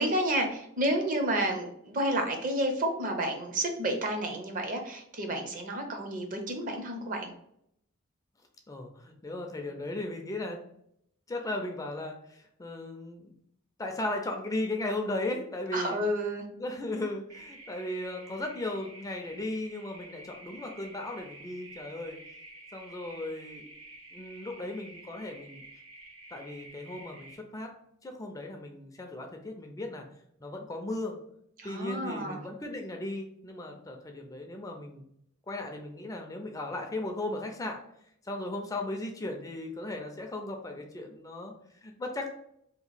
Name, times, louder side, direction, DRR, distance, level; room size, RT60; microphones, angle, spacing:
voice 1, 0.0-7.3 15.7-16.4 31.6-32.5, right 1 dB, 40° right, 4 dB, 0.6 m, -30 dB
voice 2, 8.7-10.6 11.3-13.3 13.8-16.0 16.6-22.2 22.7-23.7 24.1-25.6 26.3-27.7 28.0-30.0 30.4-31.2 31.6-35.1 35.5-37.8 38.2-42.3, left 2 dB, 15° left, 3 dB, 0.4 m, -36 dB
sound 1, 17.3-27.4, right 2 dB, 85° right, 0.9 m, -50 dB
2.9 x 2.4 x 4.0 m, 0.72 s
head